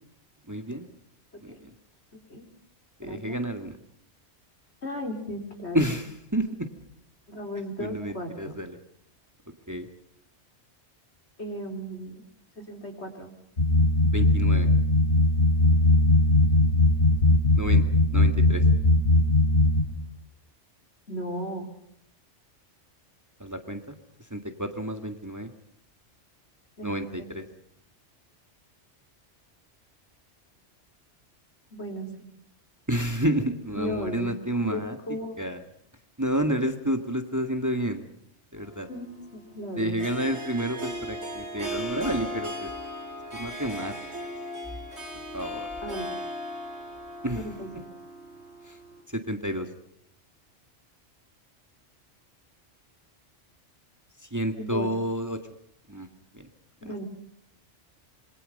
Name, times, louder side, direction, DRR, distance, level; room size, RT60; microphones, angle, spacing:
voice 1, 0.5-0.9 1.4-1.5 3.0-3.7 5.7-6.7 7.8-8.8 9.7-9.9 14.1-14.7 17.6-17.8 18.1-18.6 23.4-23.9 24.3-25.5 26.8-27.5 32.9-35.0 35.4-35.6 36.2-38.1 38.5-38.9 39.8-42.7 43.3-43.9 45.3-45.7 47.2-47.4 48.7-48.8 49.1-49.7 54.3-55.4 55.9-56.1 56.3-56.5 56.8-56.9, right 1 dB, 15° right, 6 dB, 1.9 m, -30 dB
voice 2, 3.0-3.4 4.8-5.9 7.3-8.6 11.4-12.2 12.6-13.3 21.1-21.7 26.8-27.1 31.7-32.3 33.7-35.4 38.9-39.1 39.3-40.0 45.8-46.1 47.3-47.9 54.6-54.9 56.8-57.0, equal, 65° left, 4 dB, 4.7 m, -36 dB
sound 1, 13.6-19.8, left 1 dB, 90° left, 4.9 m, -20 dB
Harp, 38.6-49.0, equal, 70° right, 4.0 m, -37 dB
26.5 x 23.0 x 5.4 m, 0.69 s
omnidirectional pair, 1.2 m